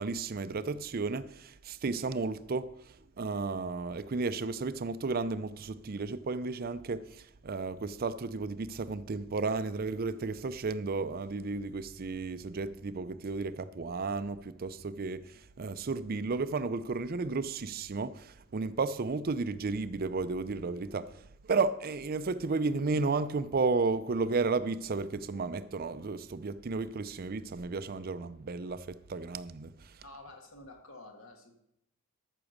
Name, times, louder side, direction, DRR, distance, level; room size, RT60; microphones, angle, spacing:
voice 1, 0.0-30.1, right 4 dB, 45° right, 0.5 m, -33 dB
voice 2, 30.0-31.5, left 2 dB, 65° left, 1.8 m, -50 dB
13.5 x 6.0 x 6.5 m
head